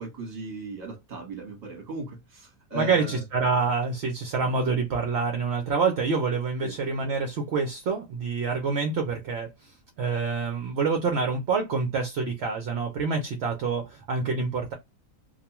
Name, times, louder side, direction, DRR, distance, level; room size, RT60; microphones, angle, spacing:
voice 1, 0.0-3.2 6.6-6.7, right 2 dB, 35° right, 0.9 m, -37 dB
voice 2, 2.7-14.7, right 4 dB, 65° right, 0.7 m, -27 dB
2.4 x 2.2 x 2.8 m
omnidirectional pair, 1.6 m